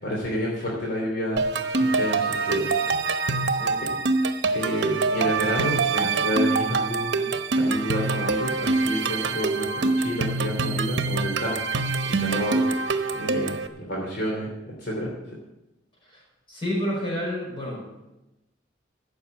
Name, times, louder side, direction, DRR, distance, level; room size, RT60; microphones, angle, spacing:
voice 1, 0.0-1.4 2.0-2.7 4.5-11.8 12.2-12.6 13.1-14.5 14.8-15.1, equal, 55° left, -3 dB, 3.2 m, -29 dB
sound 1, 1.4-13.7, right 3 dB, 65° right, 1.0 m, -25 dB
voice 2, 16.5-17.9, equal, 25° left, -3 dB, 5.9 m, -30 dB
15.0 x 6.8 x 8.4 m, 0.96 s
head